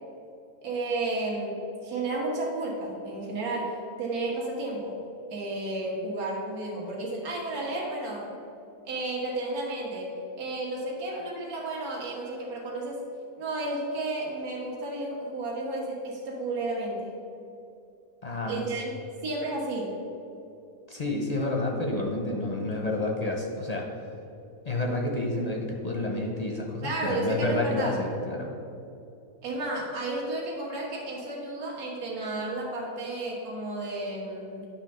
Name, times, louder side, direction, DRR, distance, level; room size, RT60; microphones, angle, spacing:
voice 1, 0.6-3.7 4.0-5.0 5.3-8.4 8.8-13.0 13.4-17.1 18.5-18.9 19.2-19.9 26.8-28.0 29.4-34.7, right 2 dB, 70° right, -3 dB, 1.8 m, -32 dB
voice 2, 18.2-18.6 20.9-23.9 24.6-28.5, left 2 dB, 40° left, 0 dB, 0.6 m, -29 dB
9.8 x 3.4 x 6.6 m, 2.6 s
omnidirectional pair, 1.6 m